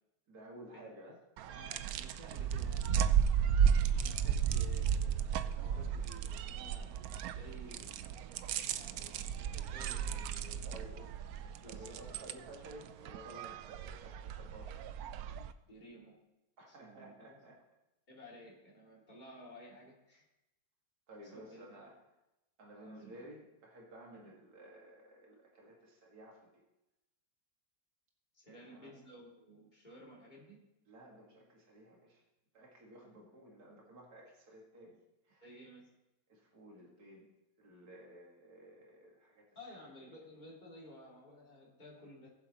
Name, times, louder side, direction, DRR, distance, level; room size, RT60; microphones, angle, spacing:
voice 1, 0.3-1.2 10.6-10.9 11.7-14.8 16.6-17.6 21.1-21.9 22.6-26.6 28.4-28.9 30.9-32.2 32.5-35.0 35.2-35.4 36.3-37.3 37.6-39.5 39.8-39.9, right 1 dB, 55° right, -2 dB, 2.5 m, -54 dB
sound 1, 1.4-15.5, right 8 dB, 75° right, 0.8 m, -34 dB
voice 2, 1.5-3.1 3.8-6.9 7.2-7.9 8.7-11.1 11.6-12.2 15.6-16.2 16.7-17.4 18.1-20.3 21.3-21.6 22.7-23.1 24.1-24.3 28.3-30.6 35.4-35.9 39.5-42.3, equal, 25° left, -4 dB, 2.8 m, -54 dB
20.0 x 7.6 x 3.0 m, 0.95 s
omnidirectional pair, 2.0 m